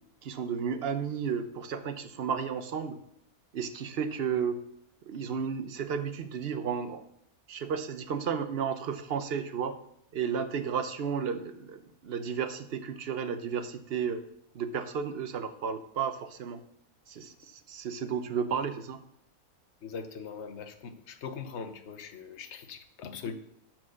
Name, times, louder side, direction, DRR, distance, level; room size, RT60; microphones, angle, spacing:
voice 1, 0.2-3.0 3.5-4.6 5.1-7.0 7.5-9.8 10.1-14.2 14.5-16.6 17.1-19.0, right 7 dB, 50° right, 10 dB, 0.8 m, -33 dB
voice 2, 19.8-23.3, left 6 dB, 55° left, 7 dB, 1.1 m, -41 dB
12.0 x 4.6 x 6.3 m, 0.72 s
omnidirectional pair, 1.6 m